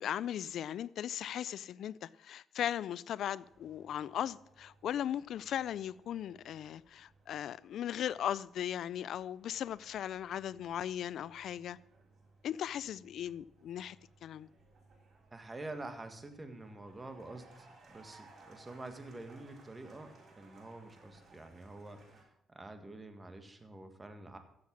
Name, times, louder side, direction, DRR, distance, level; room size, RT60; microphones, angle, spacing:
voice 1, 0.0-11.8 12.4-14.0 14.2-14.5, left 10 dB, 70° left, 0.4 m, -38 dB
sound 1, 3.4-22.2, right 3 dB, 55° right, 5.6 m, -63 dB
voice 2, 15.3-22.2 22.5-24.4, right 2 dB, 20° right, 1.8 m, -47 dB
14.5 x 7.7 x 6.1 m
cardioid pair, 110°, 0 cm